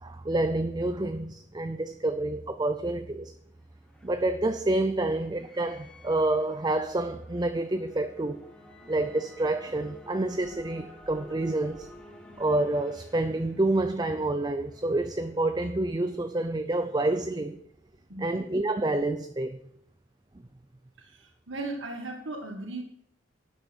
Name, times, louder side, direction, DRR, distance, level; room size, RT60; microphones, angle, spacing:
voice 1, 0.0-3.3 4.0-8.4 8.9-11.9 12.4-17.6 18.2-19.6, right 2 dB, 20° right, 0.6 m, -28 dB
sound 1, 3.3-17.0, left 1 dB, 5° left, 1.5 m, -52 dB
voice 2, 21.0-22.8, right 2 dB, 75° right, 1.8 m, -37 dB
12.5 x 9.5 x 4.5 m
head